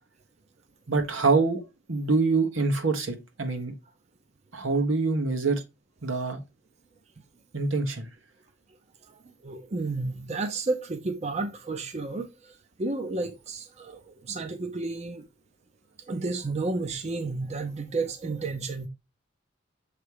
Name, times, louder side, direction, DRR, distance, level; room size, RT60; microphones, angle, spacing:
voice 1, 0.9-1.6 1.9-3.7 4.5-5.6 6.0-6.4 7.5-8.1, right 3 dB, 85° right, 1.4 m, -25 dB
voice 2, 9.4-15.3 16.1-18.9, right 3 dB, 35° right, 0.6 m, -32 dB
7.0 x 3.2 x 4.7 m
head